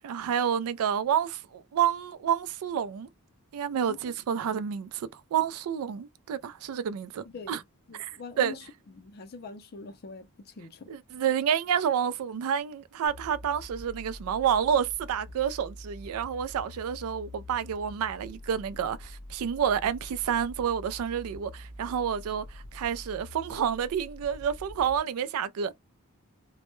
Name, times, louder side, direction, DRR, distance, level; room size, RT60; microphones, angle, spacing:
voice 1, 0.0-3.1 3.5-7.6 7.9-8.6 10.9-25.7, right 8 dB, 70° right, 0.3 m, -29 dB
voice 2, 7.9-8.6 8.9-10.9, left 4 dB, 45° left, 0.5 m, -43 dB
sound 1, 13.1-25.0, left 1 dB, 85° left, 0.7 m, -45 dB
2.1 x 2.1 x 2.9 m
head